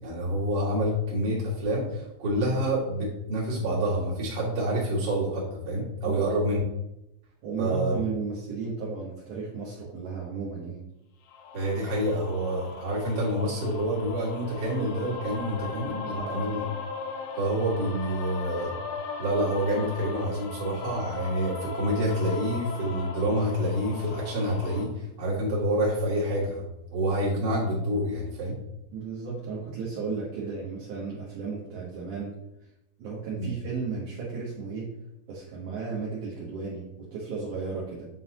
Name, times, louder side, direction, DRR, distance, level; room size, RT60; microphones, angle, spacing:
voice 1, 0.0-6.6 7.6-7.9 11.5-16.6 17.3-18.8 19.2-26.7 26.9-28.5 33.3-33.5, right 1 dB, 45° right, -6 dB, 2.4 m, -27 dB
voice 2, 7.4-10.8 16.1-16.5 28.9-32.4 33.0-34.9 35.3-38.0, right 4 dB, 70° right, -6 dB, 2.0 m, -34 dB
sound 1, 11.3-24.8, left 5 dB, 80° left, 2.8 m, -38 dB
9.3 x 3.8 x 2.9 m, 0.87 s
omnidirectional pair, 4.9 m